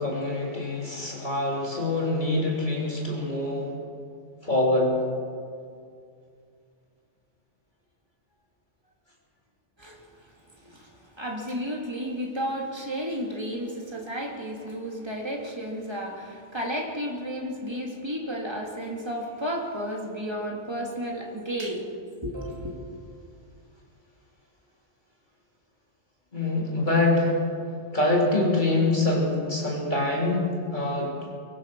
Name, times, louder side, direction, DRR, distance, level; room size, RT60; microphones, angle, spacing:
voice 1, 0.0-3.8 4.4-4.9 26.3-27.3 27.9-31.3, left 2 dB, 40° left, -3 dB, 3.6 m, -25 dB
voice 2, 10.6-21.9 22.2-22.8, equal, 20° right, 0 dB, 2.7 m, -32 dB
23.5 x 19.0 x 6.1 m, 2.3 s
omnidirectional pair, 1.2 m